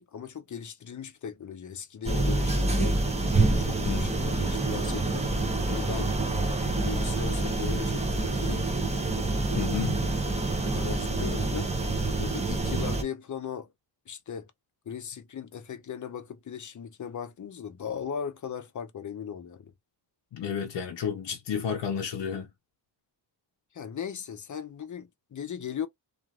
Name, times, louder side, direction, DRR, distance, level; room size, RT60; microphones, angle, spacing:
voice 1, 0.0-3.0 3.6-5.3 5.7-6.1 6.5-8.7 9.5-9.8 10.6-11.7 12.2-13.7 14.1-14.5 14.9-19.7 23.7-25.9, left 7 dB, 45° left, 0.6 m, -38 dB
sound 1, 2.0-13.0, right 2 dB, 15° right, 0.7 m, -27 dB
voice 2, 3.9-4.4 9.6-10.0 20.3-22.5, left 7 dB, 85° left, 0.7 m, -32 dB
2.9 x 2.5 x 2.4 m
wide cardioid pair, 155°, 42 cm